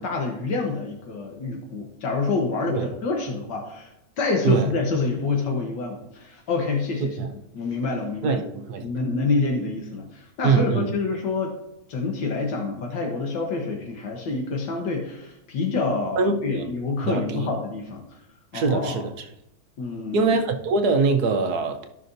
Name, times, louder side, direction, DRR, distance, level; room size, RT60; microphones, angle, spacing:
voice 1, 0.0-3.9 4.2-7.2 7.6-8.4 8.8-11.5 11.9-18.0 18.5-19.0 19.8-20.3, left 4 dB, 85° left, 1.9 m, -27 dB
voice 2, 8.2-8.9 10.4-10.9 16.2-16.7 17.0-17.5 18.5-19.1 20.1-22.0, right 4 dB, 70° right, 1.2 m, -23 dB
13.5 x 5.8 x 2.6 m
omnidirectional pair, 1.9 m